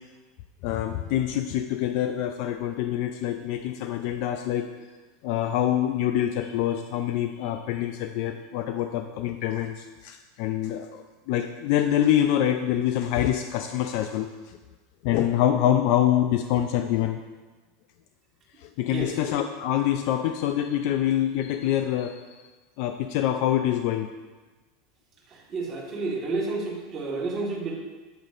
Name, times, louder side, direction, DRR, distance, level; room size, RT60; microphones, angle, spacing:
voice 1, 0.6-4.7 5.2-14.6 15.0-17.2 18.6-22.4 22.8-24.1, left 11 dB, 50° left, 7 dB, 0.4 m, -25 dB
voice 2, 25.3-27.8, right 3 dB, 25° right, -3 dB, 1.6 m, -30 dB
8.9 x 8.2 x 2.5 m, 1.3 s
supercardioid pair, 160°, 0 cm